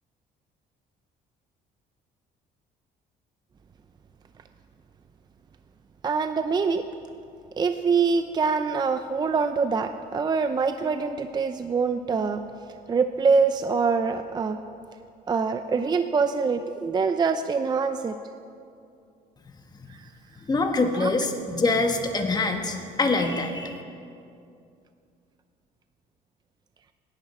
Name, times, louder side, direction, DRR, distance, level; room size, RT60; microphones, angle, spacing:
voice 1, 6.0-6.8 7.6-12.4 12.9-14.6 15.3-18.2 21.0-21.1, right 5 dB, 25° right, 9 dB, 0.5 m, -24 dB
voice 2, 20.5-23.8, left 3 dB, 25° left, 4 dB, 1.4 m, -24 dB
17.5 x 11.0 x 4.4 m, 2.5 s
cardioid pair, 110°, 17 cm